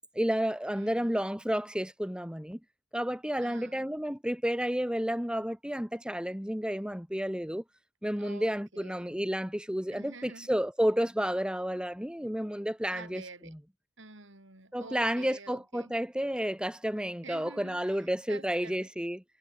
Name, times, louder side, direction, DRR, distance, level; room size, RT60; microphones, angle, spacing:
voice 1, 0.1-2.6 2.9-7.6 8.0-13.2 14.7-19.2, equal, 5° right, 2.9 m, -31 dB
voice 2, 0.7-1.2 3.4-3.9 8.2-9.2 9.9-10.5 12.9-13.5 14.0-16.0 17.2-18.9, right 3 dB, 65° right, 6.1 m, -49 dB
head